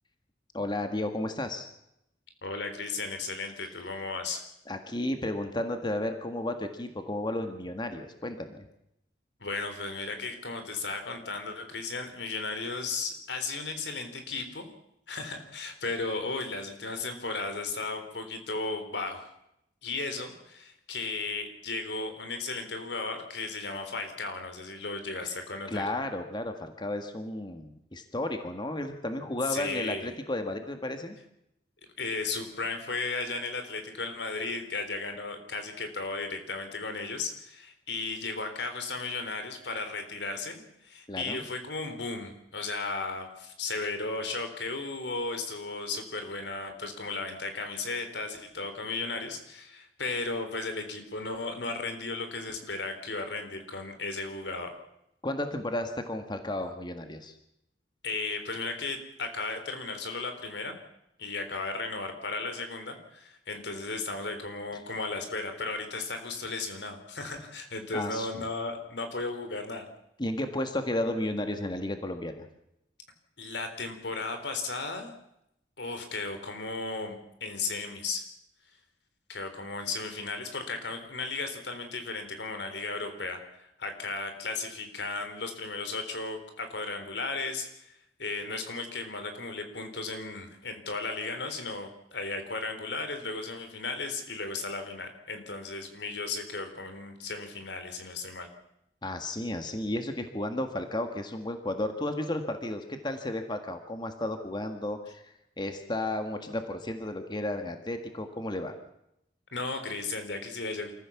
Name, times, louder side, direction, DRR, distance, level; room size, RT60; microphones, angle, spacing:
voice 1, 0.5-1.7 4.7-8.7 25.7-31.2 41.1-41.4 55.2-57.3 67.9-68.4 70.2-72.5 99.0-108.7, left 1 dB, 25° left, 6 dB, 1.8 m, -33 dB
voice 2, 2.4-4.5 9.4-14.7 15.1-19.3 19.8-25.8 29.5-30.1 32.0-54.7 58.0-60.8 61.2-69.9 73.4-75.1 75.8-78.2 79.3-87.9 88.2-98.5 109.5-110.9, left 3 dB, 85° left, 7 dB, 3.7 m, -35 dB
27.0 x 14.5 x 7.2 m, 0.81 s
head